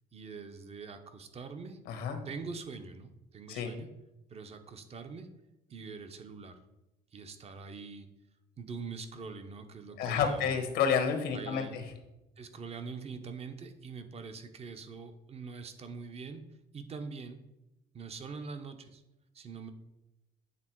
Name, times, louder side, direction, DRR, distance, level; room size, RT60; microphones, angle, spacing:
voice 1, 0.1-1.8 2.2-3.9 4.3-5.3 5.7-6.6 7.1-8.1 8.6-10.6 11.3-11.8 12.4-16.4 16.7-17.4 17.9-19.0 19.3-19.7, right 5 dB, 35° right, 8 dB, 0.8 m, -44 dB
voice 2, 1.9-2.2 3.5-3.7 10.0-11.8, left 6 dB, 85° left, 6 dB, 1.1 m, -30 dB
8.6 x 3.5 x 4.5 m, 0.94 s
cardioid pair, 110°, 17 cm